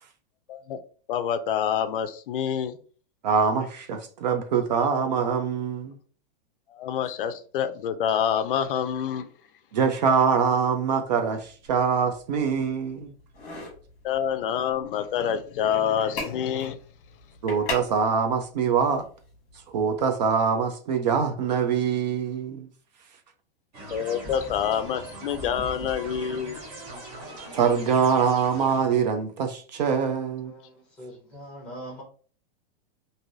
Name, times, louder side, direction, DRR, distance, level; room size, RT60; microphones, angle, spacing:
voice 1, 0.5-0.8 1.1-2.8 6.7-9.3 14.0-16.8 23.9-26.6, left 8 dB, 60° left, 0.4 m, -27 dB
voice 2, 3.2-5.9 9.7-13.1 17.4-19.1 19.7-22.7 27.5-30.5, right 6 dB, 45° right, 0.4 m, -24 dB
sound 1, 11.3-20.1, left 3 dB, 20° left, 1.1 m, -41 dB
sound 2, 23.7-28.8, right 1 dB, 25° right, 0.8 m, -40 dB
voice 3, 30.4-32.0, right 1 dB, 5° left, 0.9 m, -42 dB
3.1 x 2.6 x 2.5 m
supercardioid pair, 175°, 30 cm